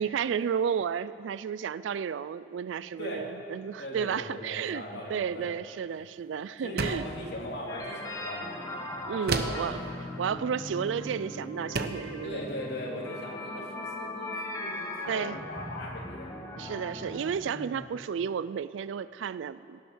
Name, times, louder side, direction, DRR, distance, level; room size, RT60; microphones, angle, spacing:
voice 1, 0.0-4.8 5.1-7.0 9.1-9.8 10.2-12.5 15.1-15.4 16.6-19.8, right 7 dB, 85° right, 17 dB, 0.3 m, -32 dB
voice 2, 3.8-5.5 6.6-8.8 9.4-9.9 12.2-16.4 17.4-17.8, left 1 dB, 65° left, -2 dB, 2.8 m, -39 dB
sound 1, 6.8-7.2 9.3-9.7 11.0-11.2 11.7-12.1, right 3 dB, 60° right, 0.9 m, -30 dB
sound 2, 7.7-17.3, left 1 dB, 20° left, 1.5 m, -39 dB
17.5 x 11.0 x 6.3 m, 2.7 s
head